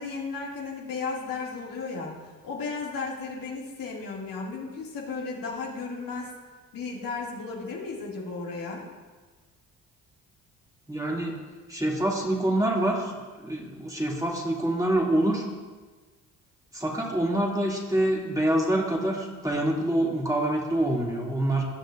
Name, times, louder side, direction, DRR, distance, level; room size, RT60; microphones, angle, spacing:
voice 1, 0.0-2.1 2.4-6.3 6.7-8.8, left 4 dB, 60° left, -3 dB, 2.4 m, -34 dB
voice 2, 10.9-11.3 11.7-15.5 16.7-21.6, right 1 dB, 10° right, -3 dB, 2.6 m, -26 dB
19.0 x 6.4 x 2.6 m, 1.4 s
hypercardioid pair, 50°, 39 cm